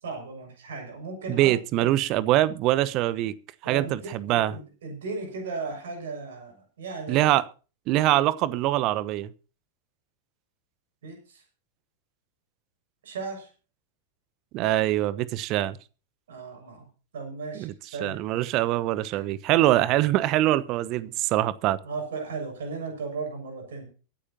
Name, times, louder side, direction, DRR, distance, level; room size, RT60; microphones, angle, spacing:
voice 1, 0.0-1.9 3.6-7.3 11.0-11.4 13.0-13.5 16.3-16.9 17.1-18.2 19.1-19.2 21.8-23.8, right 4 dB, 60° right, 4 dB, 6.3 m, -36 dB
voice 2, 1.3-3.3 3.6-4.5 7.1-7.4 7.9-9.3 14.5-15.8 17.5-17.7 18.0-21.8, right 15 dB, 40° right, 18 dB, 1.0 m, -23 dB
23.0 x 9.9 x 2.9 m, 0.35 s
figure-of-eight pair, 90°, 0 cm